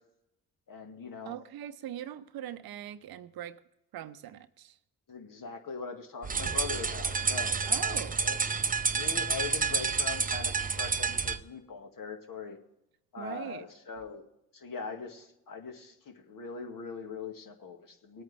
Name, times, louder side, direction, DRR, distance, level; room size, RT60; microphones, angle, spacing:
voice 1, 0.7-1.4 5.1-8.4 8.8-12.6 13.1-14.2 14.5-18.2, left 5 dB, 55° left, 4 dB, 2.0 m, -41 dB
voice 2, 1.2-3.6 3.9-4.8 7.7-8.2 13.2-13.7, right 11 dB, 60° right, 13 dB, 0.8 m, -41 dB
sound 1, 6.2-11.4, right 5 dB, 20° right, 0.7 m, -29 dB
19.5 x 8.9 x 3.5 m, 0.84 s
hypercardioid pair, 50°, 40 cm